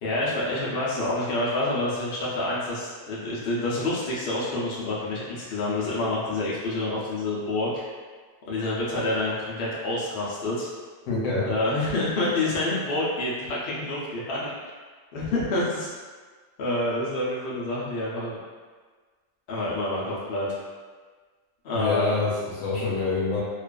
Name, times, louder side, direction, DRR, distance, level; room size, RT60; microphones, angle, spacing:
voice 1, 0.0-7.8 8.5-10.7 11.4-14.5 15.1-15.9 16.6-18.4 19.5-20.5 21.6-22.1, left 2 dB, 60° left, -6 dB, 0.7 m, -27 dB
voice 2, 11.1-11.5 21.7-23.4, left 3 dB, 90° left, -7 dB, 1.0 m, -26 dB
2.4 x 2.3 x 2.2 m, 1.5 s
omnidirectional pair, 1.3 m